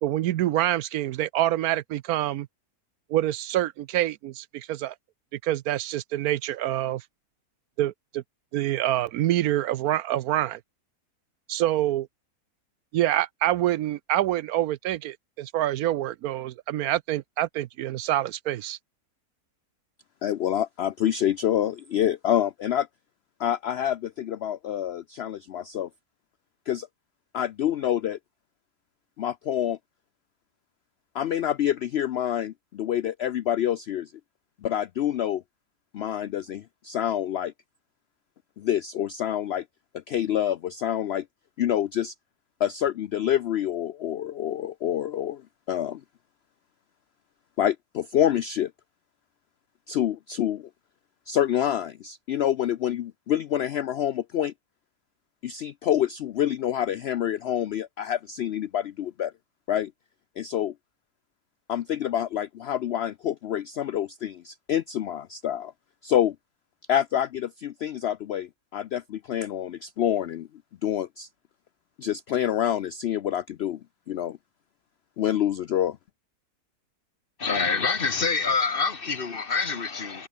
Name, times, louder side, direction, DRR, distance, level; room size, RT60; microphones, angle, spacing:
voice 1, 0.0-2.5 3.1-4.9 5.4-7.0 7.8-8.2 8.5-10.6 11.5-12.1 12.9-18.8, right 13 dB, 75° right, 1.0 m, -26 dB
voice 2, 20.2-22.9 23.4-25.9 26.7-26.9 27.3-28.2 29.2-29.8 31.1-34.1 34.6-35.4 35.9-37.5 38.6-39.6 39.9-41.3 41.6-42.1 42.6-45.4 45.7-46.0 47.6-48.7 49.9-50.7 51.3-54.5 55.4-59.3 59.7-59.9 60.4-60.7 61.7-65.7 66.0-66.4 66.9-70.5 70.8-71.3 72.0-73.8 74.1-74.4 75.2-76.0, left 10 dB, 75° left, 0.5 m, -27 dB
voice 3, 77.4-80.3, left 4 dB, 40° left, 1.2 m, -26 dB
omnidirectional pair, 1.7 m